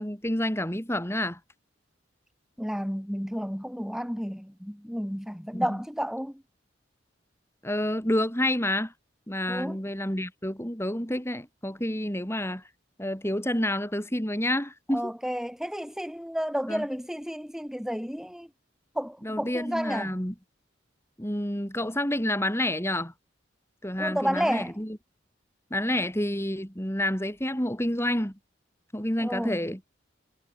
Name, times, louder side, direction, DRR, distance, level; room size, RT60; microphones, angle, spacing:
voice 1, 0.0-1.4 5.5-5.8 7.6-8.9 9.3-12.6 13.0-15.1 16.7-16.9 19.2-20.3 21.2-23.1 23.8-25.0 25.7-28.4 28.9-29.8, left 1 dB, 15° left, 5.7 m, -29 dB
voice 2, 2.6-6.3 9.5-9.8 14.9-18.5 19.0-20.1 24.0-24.7 29.2-29.6, equal, ahead, 5.5 m, -31 dB
head